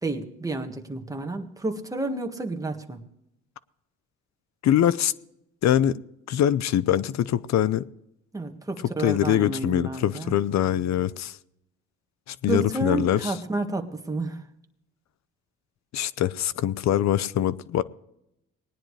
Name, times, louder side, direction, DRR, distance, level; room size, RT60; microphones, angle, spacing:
voice 1, 0.0-3.0 8.3-10.4 12.5-14.5, right 2 dB, 10° right, 1.6 m, -30 dB
voice 2, 4.6-5.1 5.6-6.0 6.3-7.8 9.0-11.4 12.3-13.3 15.9-17.8, left 11 dB, 65° left, 0.6 m, -23 dB
19.5 x 10.0 x 3.2 m
cardioid pair, 90°, 30 cm